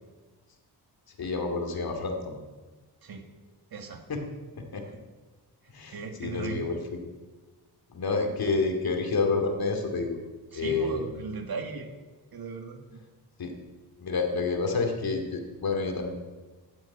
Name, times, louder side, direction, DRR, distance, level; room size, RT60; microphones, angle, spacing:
voice 1, 1.2-2.4 4.1-4.2 4.5-4.8 5.7-7.0 7.9-10.2 10.5-11.0 13.4-13.5 14.0-16.1, left 4 dB, 60° left, 3 dB, 2.6 m, -29 dB
voice 2, 3.7-4.0 5.9-6.7 10.5-11.9 12.3-13.0, right 5 dB, 60° right, 4 dB, 2.0 m, -37 dB
12.0 x 9.7 x 8.7 m, 1.3 s
wide cardioid pair, 125°, 40 cm